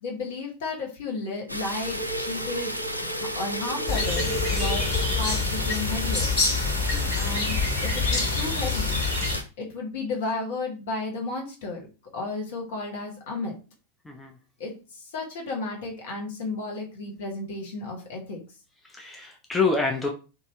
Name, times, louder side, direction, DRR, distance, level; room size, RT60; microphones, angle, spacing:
voice 1, 0.0-2.7 3.0-6.3 7.2-7.6 7.8-9.0 9.6-11.9 12.1-13.5 14.6-18.4, left 3 dB, 55° left, 0 dB, 1.0 m, -33 dB
sound 1, 1.5-9.4, equal, 90° right, 0.4 m, -33 dB
sound 2, 1.8-6.2, right 1 dB, 80° left, 0.7 m, -35 dB
sound 3, 3.9-9.4, left 4 dB, 40° left, 1.7 m, -26 dB
voice 2, 14.0-14.4 18.8-20.1, left 4 dB, 10° left, 1 dB, 0.4 m, -27 dB
2.7 x 2.4 x 3.1 m, 0.33 s
figure-of-eight pair, 90°, 0 cm